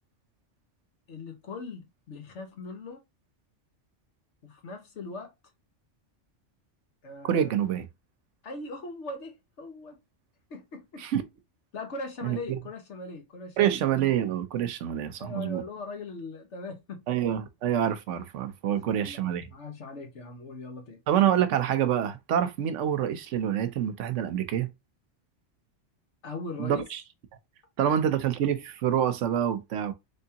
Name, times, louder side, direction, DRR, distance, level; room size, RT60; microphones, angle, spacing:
voice 1, 1.1-3.0 4.4-5.3 7.0-7.7 8.4-10.0 10.5-11.0 11.7-13.8 15.2-17.0 18.6-21.0 26.2-26.8 27.8-28.0, left 3 dB, 75° left, 1.3 m, -40 dB
voice 2, 7.2-7.9 11.0-11.2 12.2-12.4 13.6-15.6 17.1-19.5 21.1-24.7 26.6-27.0 27.8-29.9, right 10 dB, 80° right, 1.0 m, -26 dB
3.5 x 3.3 x 2.8 m
omnidirectional pair, 1.2 m